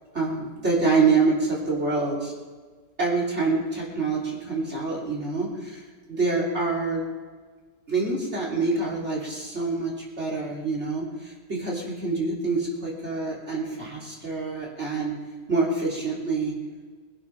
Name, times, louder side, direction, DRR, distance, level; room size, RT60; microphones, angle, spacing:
voice 1, 0.1-2.3 3.0-7.1 7.9-15.1 15.5-16.6, right 3 dB, 40° right, -3 dB, 3.3 m, -26 dB
21.5 x 9.7 x 5.8 m, 1.5 s
omnidirectional pair, 1.8 m